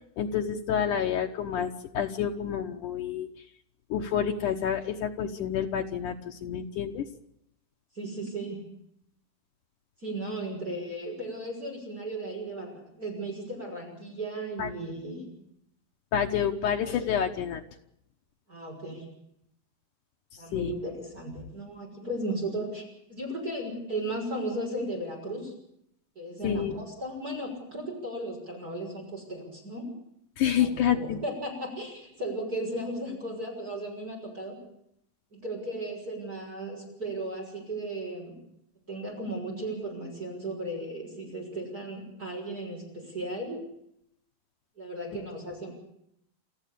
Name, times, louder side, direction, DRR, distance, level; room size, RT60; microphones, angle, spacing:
voice 1, 0.0-3.3 3.9-7.0 14.6-14.7 16.1-17.6 20.5-20.7 26.4-26.8 30.4-31.2, left 8 dB, 85° left, 2 dB, 1.8 m, -28 dB
voice 2, 7.9-8.6 10.0-15.2 18.5-19.0 20.4-22.8 23.1-25.5 26.1-29.9 30.6-34.6 35.3-38.4 38.9-43.6 44.8-45.8, right 1 dB, 20° right, 0 dB, 6.6 m, -35 dB
29.5 x 14.5 x 8.4 m, 0.75 s
omnidirectional pair, 5.4 m